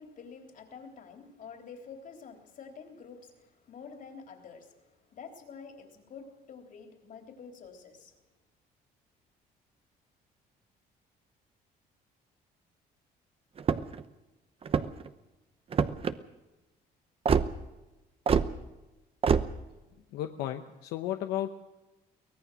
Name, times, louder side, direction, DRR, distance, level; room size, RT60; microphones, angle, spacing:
voice 1, 0.0-8.1, left 5 dB, 50° left, 4 dB, 3.6 m, -48 dB
sound 1, 13.6-14.0 14.6-15.1 15.7-16.1 17.3-17.5 18.3-18.5 19.2-19.5, right 6 dB, 35° right, 0.9 m, -25 dB
voice 2, 20.1-21.5, left 12 dB, 90° left, 6 dB, 1.0 m, -33 dB
23.5 x 17.5 x 6.3 m, 1.1 s
cardioid pair, 110°, 17 cm